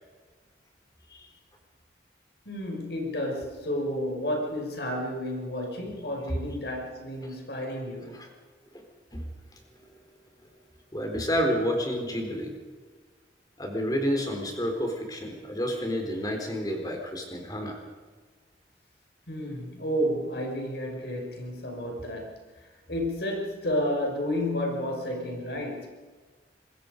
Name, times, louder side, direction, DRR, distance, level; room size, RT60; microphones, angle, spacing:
voice 1, 2.5-8.2 19.3-25.9, equal, 65° left, 1 dB, 5.8 m, -31 dB
voice 2, 10.9-12.5 13.6-17.8, equal, 20° left, 3 dB, 4.0 m, -29 dB
26.0 x 21.5 x 5.3 m, 1.4 s
head